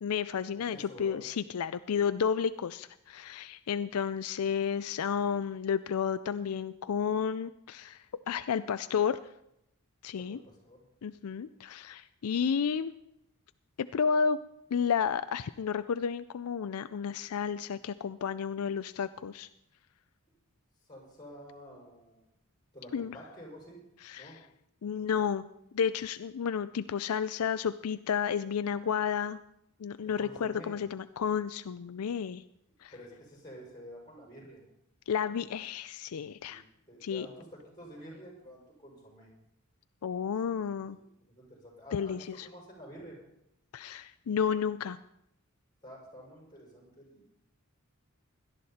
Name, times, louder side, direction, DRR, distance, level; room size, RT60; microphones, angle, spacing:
voice 1, 0.0-9.2 10.0-10.4 11.0-12.9 13.8-14.4 14.7-19.5 22.9-23.2 24.0-24.4 24.8-25.5 25.7-29.4 29.8-32.4 32.8-32.9 35.1-36.6 37.0-37.3 40.0-41.0 41.9-42.5 43.7-45.0, left 7 dB, 75° left, 13 dB, 0.4 m, -31 dB
voice 2, 0.7-1.2 10.2-10.8 20.9-22.2 22.7-23.8 24.2-24.4 30.2-30.8 32.9-34.6 36.5-36.6 36.9-39.3 40.5-40.8 41.2-43.2 45.8-47.3, equal, 20° left, -3 dB, 6.1 m, -49 dB
17.5 x 12.0 x 4.2 m, 0.79 s
head